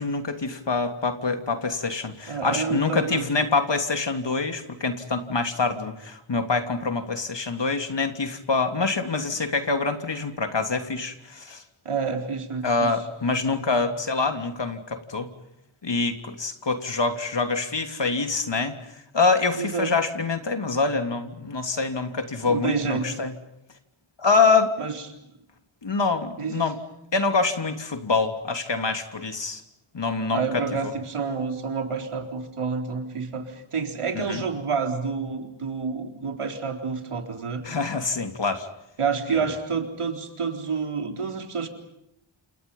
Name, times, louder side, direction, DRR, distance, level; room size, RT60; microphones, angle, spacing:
voice 1, 0.0-11.6 12.6-15.3 15.8-23.3 24.2-24.8 25.8-26.8 27.1-29.6 29.9-30.6 34.3-34.4 37.6-38.7 39.3-39.5, left 4 dB, 55° left, 7 dB, 3.2 m, -25 dB
voice 2, 2.3-3.5 11.8-12.9 19.5-19.9 22.4-23.2 24.8-25.0 26.4-26.7 30.3-37.6 39.0-41.7, right 5 dB, 85° right, 5 dB, 4.0 m, -29 dB
29.5 x 28.5 x 5.6 m, 0.81 s
wide cardioid pair, 65°, 50 cm